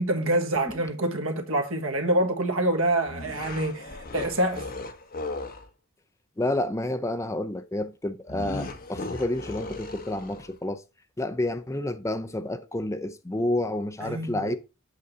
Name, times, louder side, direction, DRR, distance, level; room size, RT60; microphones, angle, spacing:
voice 1, 0.0-4.7 14.0-14.6, right 1 dB, 70° right, 1.5 m, -26 dB
sound 1, 3.1-5.7 8.3-10.6, left 2 dB, 45° left, 1.2 m, -37 dB
voice 2, 6.4-10.8 11.2-14.6, left 1 dB, 15° left, 0.6 m, -29 dB
8.1 x 3.7 x 6.7 m
head